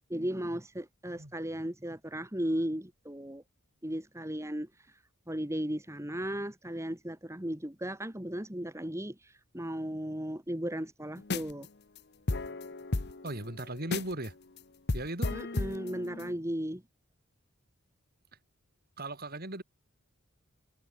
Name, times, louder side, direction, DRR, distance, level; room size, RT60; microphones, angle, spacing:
voice 1, 0.1-3.4 3.8-4.7 5.3-11.7 15.3-16.8, equal, 15° right, 2.2 m, -36 dB
sound 1, 11.2-11.7 12.0-12.1 12.3-14.3 14.6-14.7 14.9-16.3, left 2 dB, 50° left, 1.0 m, -33 dB
voice 2, 13.2-14.3 14.9-15.3 19.0-19.6, right 1 dB, 45° right, 4.1 m, -37 dB
head